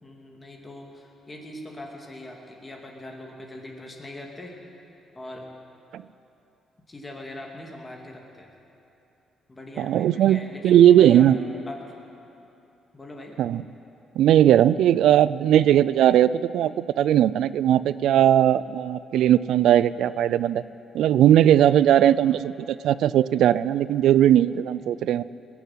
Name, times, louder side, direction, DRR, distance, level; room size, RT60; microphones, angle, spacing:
voice 1, 0.0-4.6 5.1-5.5 6.9-8.5 9.5-11.3 11.7-12.0 12.9-13.4 21.8-22.4 24.8-25.0, left 1 dB, 20° left, 0 dB, 2.5 m, -41 dB
voice 2, 9.8-11.4 13.4-13.6 14.2-20.6 20.9-25.2, right 11 dB, 80° right, 17 dB, 0.3 m, -18 dB
20.5 x 7.3 x 9.1 m, 2.9 s
cardioid pair, 90°, 0 cm